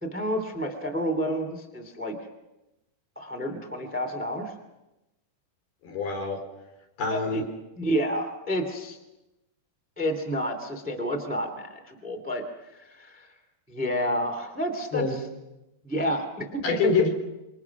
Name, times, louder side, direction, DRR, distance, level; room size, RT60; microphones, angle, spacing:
voice 1, 0.0-2.2 3.1-4.5 7.1-7.4 7.8-9.0 10.0-12.4 12.7-13.3 13.7-15.2 15.8-17.1, equal, 5° right, 5 dB, 1.4 m, -29 dB
voice 2, 5.8-6.4 7.0-7.5 14.9-15.2 16.6-17.1, left 4 dB, 65° left, 2 dB, 5.9 m, -26 dB
28.0 x 25.0 x 6.0 m, 0.98 s
omnidirectional pair, 4.9 m